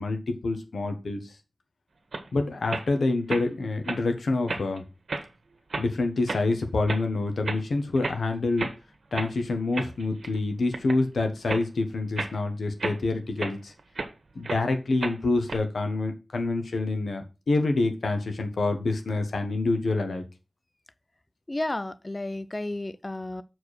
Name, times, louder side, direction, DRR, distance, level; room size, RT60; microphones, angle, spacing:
voice 1, 0.0-1.3 2.3-4.8 5.8-8.7 9.1-13.7 14.3-20.2, left 2 dB, 90° left, 1.4 m, -27 dB
sound 1, 2.1-2.3 2.7-2.9 3.3-3.5 3.8-4.0 4.5-4.8 5.1-5.3 5.7-5.9 6.3-6.4 6.9-7.0 7.5-7.6 8.0-8.2 8.6-8.8 9.1-9.3 9.7-10.4 10.7-11.0 11.5-11.7 12.2-12.4 12.8-14.1 14.4-14.6 15.0-15.6, right 3 dB, 80° right, 1.5 m, -32 dB
voice 2, 21.5-23.4, left 1 dB, 25° left, 0.5 m, -32 dB
7.0 x 4.7 x 6.5 m
wide cardioid pair, 100°, 0 cm